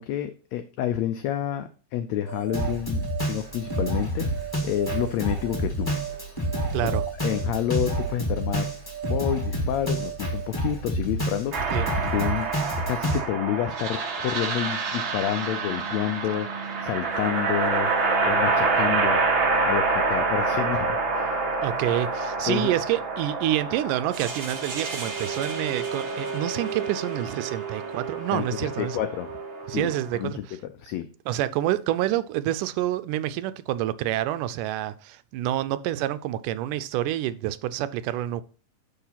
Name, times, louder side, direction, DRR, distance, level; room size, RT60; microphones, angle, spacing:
voice 1, 0.0-6.0 6.8-6.9 7.2-8.7 9.0-12.5 12.9-19.2 19.6-21.4 22.5-22.7 28.3-29.3 29.7-30.4 30.8-31.1, left 11 dB, 80° left, 1.5 m, -29 dB
sound 1, 2.3-10.5, right 10 dB, 65° right, 1.6 m, -37 dB
Drum kit, 2.5-13.2, right 1 dB, 10° left, 1.2 m, -29 dB
voice 2, 6.7-7.1 11.7-11.9 21.6-29.0 29.7-30.4 31.3-38.4, right 13 dB, 85° right, 2.1 m, -28 dB
sound 2, 11.5-30.2, right 4 dB, 50° right, 1.7 m, -27 dB
10.5 x 4.0 x 5.6 m
omnidirectional pair, 3.7 m